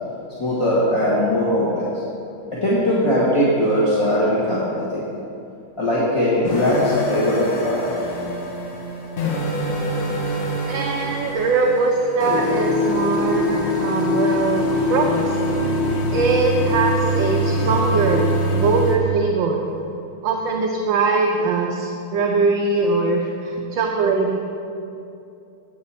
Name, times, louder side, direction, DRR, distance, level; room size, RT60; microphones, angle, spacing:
voice 1, 0.4-1.9 2.5-5.0 5.8-7.4 7.6-7.9 17.5-17.7, equal, 20° left, -9 dB, 1.1 m, -20 dB
sound 1, 6.4-19.0, left 1 dB, 65° left, 1.7 m, -23 dB
voice 2, 10.7-15.4 16.1-19.6 20.2-24.4, right 4 dB, 70° right, 1 dB, 1.3 m, -21 dB
9.5 x 8.1 x 4.3 m, 2.7 s
omnidirectional pair, 2.3 m